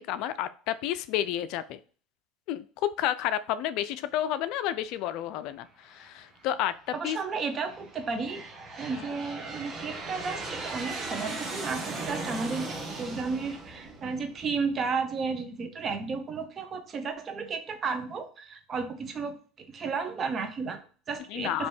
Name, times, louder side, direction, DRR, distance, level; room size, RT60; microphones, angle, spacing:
voice 1, 0.0-1.8 2.5-6.8 7.0-7.2 8.9-9.1 21.3-21.7, left 11 dB, 65° left, 14 dB, 0.3 m, -31 dB
Aircraft, 5.9-6.5 7.2-14.8, right 3 dB, 20° right, 1.2 m, -38 dB
voice 2, 6.9-8.4 8.8-21.7, right 4 dB, 35° right, 7 dB, 0.9 m, -33 dB
4.2 x 2.9 x 3.4 m, 0.40 s
supercardioid pair, 95°, 0 cm